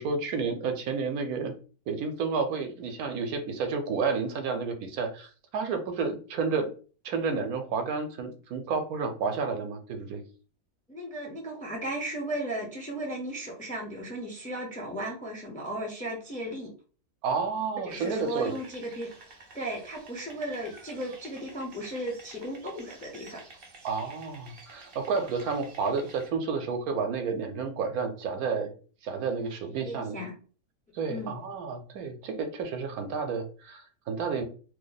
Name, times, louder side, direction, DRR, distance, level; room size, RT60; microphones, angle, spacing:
voice 1, 0.0-1.5 1.9-6.7 7.0-10.2 17.2-18.6 23.8-28.7 29.0-30.2 30.9-34.4, right 5 dB, 75° right, 6 dB, 1.1 m, -31 dB
voice 2, 10.9-16.7 17.9-19.1 19.5-23.4 29.7-30.3 31.1-31.3, right 1 dB, 10° left, -1 dB, 0.6 m, -35 dB
sound 1, 17.9-26.3, right 3 dB, 50° right, 0.8 m, -51 dB
3.1 x 2.1 x 3.9 m, 0.39 s
omnidirectional pair, 1.6 m